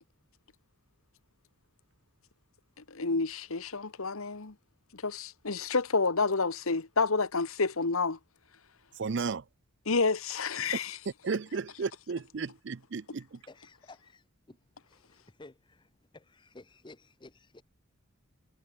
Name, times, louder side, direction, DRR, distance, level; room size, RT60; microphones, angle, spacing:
voice 1, 2.9-4.5 4.9-8.2 9.9-11.0, left 4 dB, 75° left, 1.3 m, -29 dB
voice 2, 9.0-9.5 11.2-13.4, right 5 dB, 55° right, 0.5 m, -34 dB
voice 3, 13.6-14.1 15.4-15.5 16.1-17.6, left 2 dB, 20° left, 0.6 m, -52 dB
head